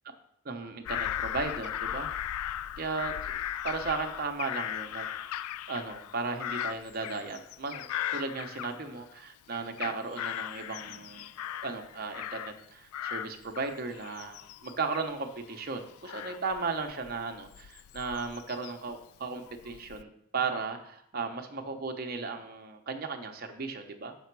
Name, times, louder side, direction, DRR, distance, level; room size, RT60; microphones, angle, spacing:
voice 1, 0.4-2.1 2.8-3.1 3.6-11.3 11.6-24.1, right 4 dB, 45° right, 4 dB, 0.7 m, -36 dB
Bird vocalization bird call bird song / Crow, 0.8-9.2 9.5-12.6 12.9-18.9 19.5-20.0, left 11 dB, 85° left, 0.3 m, -38 dB
6.6 x 6.3 x 4.6 m, 0.70 s
head